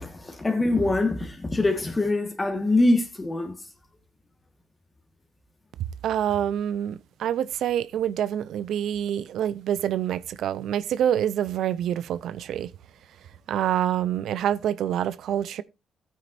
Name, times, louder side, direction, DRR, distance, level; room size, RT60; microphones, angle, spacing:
voice 1, 0.0-3.5, left 2 dB, 20° left, 1.5 m, -24 dB
voice 2, 6.0-12.7 13.5-15.6, right 10 dB, 75° right, 0.5 m, -26 dB
13.5 x 9.4 x 2.6 m
cardioid pair, 90°, 0 cm